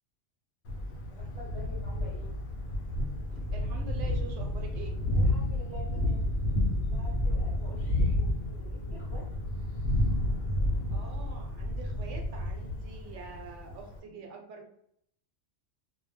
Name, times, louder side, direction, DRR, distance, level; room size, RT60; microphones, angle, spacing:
Thunder, 0.6-14.0, left 1 dB, 65° left, 0.8 m, -30 dB
voice 1, 1.1-2.3 5.1-6.2 6.9-9.3, equal, 25° left, -7 dB, 0.8 m, -48 dB
voice 2, 3.3-5.0 10.3-14.7, right 4 dB, 75° right, 2 dB, 0.9 m, -46 dB
2.2 x 2.0 x 3.1 m, 0.71 s
omnidirectional pair, 1.3 m